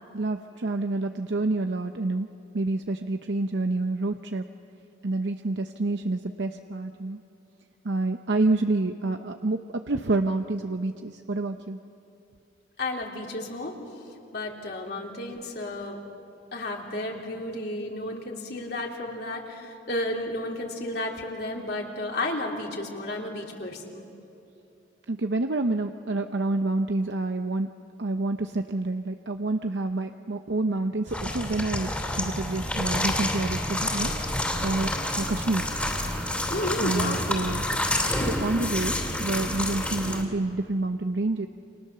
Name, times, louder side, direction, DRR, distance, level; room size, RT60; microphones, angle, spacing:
voice 1, 0.1-2.3 2.5-4.5 5.0-7.2 7.8-11.8 25.1-27.7 28.0-31.9 32.2-35.7 36.8-37.6 38.2-41.5, right 2 dB, 70° right, 6 dB, 0.8 m, -28 dB
voice 2, 12.8-13.8 14.3-16.0 16.5-24.0 36.5-37.3, left 1 dB, 60° left, 0 dB, 3.3 m, -32 dB
sound 1, 31.1-40.2, left 1 dB, 10° left, 3.0 m, -28 dB
29.5 x 27.0 x 6.8 m, 2.7 s
head